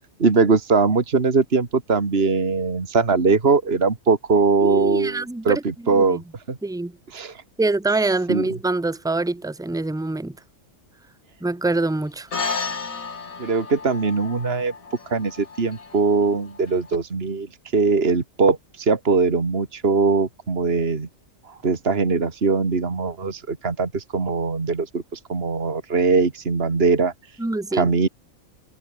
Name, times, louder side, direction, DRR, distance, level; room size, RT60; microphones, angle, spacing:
voice 1, 0.2-6.2 6.5-6.6 7.1-7.4 8.3-8.4 13.4-14.7 15.1-17.5 17.7-21.1 21.5-27.1 27.7-28.1, right 4 dB, 50° right, 2.3 m, -21 dB
voice 2, 4.6-6.2 6.6-6.9 7.6-10.4 11.4-12.3 27.4-27.9, right 2 dB, 5° right, 0.7 m, -25 dB
sound 1, 12.3-17.0, left 4 dB, 90° left, 2.8 m, -33 dB
omnidirectional pair, 1.4 m